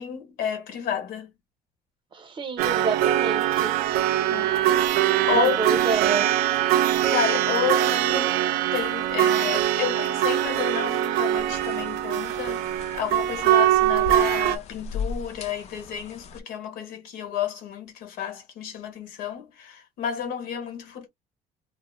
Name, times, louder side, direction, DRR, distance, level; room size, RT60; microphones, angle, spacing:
voice 1, 0.0-1.3 4.3-4.5 5.3-5.8 7.1-21.1, left 8 dB, 75° left, 1.0 m, -31 dB
voice 2, 2.1-3.7 5.3-6.3, right 5 dB, 35° right, 0.7 m, -28 dB
sound 1, 2.6-14.6, right 13 dB, 80° right, 0.4 m, -22 dB
sound 2, 11.3-16.4, left 4 dB, 45° left, 0.4 m, -38 dB
2.0 x 2.0 x 3.0 m
cardioid pair, 135°, 15 cm